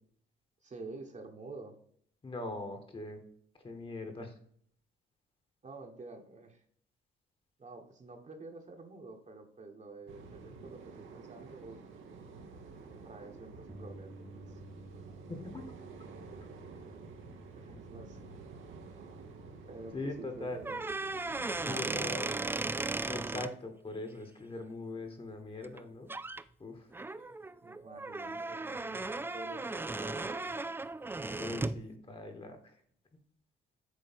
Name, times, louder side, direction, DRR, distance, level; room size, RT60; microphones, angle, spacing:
voice 1, 0.6-1.8 5.6-6.6 7.6-11.8 13.0-14.6 17.6-18.4 19.7-20.8 21.6-22.5 27.1-27.3 27.6-30.7, right 3 dB, 35° right, 3 dB, 1.3 m, -49 dB
voice 2, 2.2-3.2 3.6-4.3 15.3-15.6 19.9-20.6 21.6-22.3 23.1-26.1 26.6-26.9 31.4-32.8, left 2 dB, 25° left, 6 dB, 1.4 m, -41 dB
sound 1, 10.1-21.7, right 4 dB, 80° right, 1.3 m, -50 dB
Bass guitar, 13.7-19.9, equal, 5° left, 1.1 m, -54 dB
sound 2, 20.6-23.5 25.6-25.8 26.1-26.4 26.9-31.8, right 3 dB, 10° right, 0.4 m, -36 dB
8.2 x 3.1 x 4.3 m, 0.62 s
cardioid pair, 90°, 20 cm